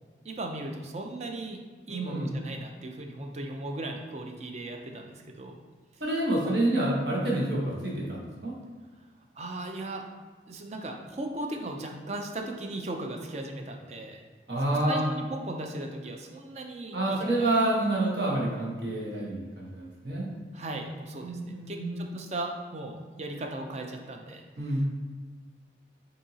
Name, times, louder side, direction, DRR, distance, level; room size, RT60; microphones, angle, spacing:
voice 1, 0.2-1.6 1.9-5.6 6.4-6.6 9.3-10.1 10.5-14.2 14.6-17.5 20.5-24.9, right 2 dB, 40° right, 3 dB, 0.5 m, -37 dB
voice 2, 1.9-2.3 6.0-8.5 14.5-15.1 16.9-20.2 21.2-22.0 24.6-24.9, right 1 dB, 70° right, -4 dB, 1.2 m, -28 dB
6.6 x 2.7 x 2.8 m, 1.5 s
head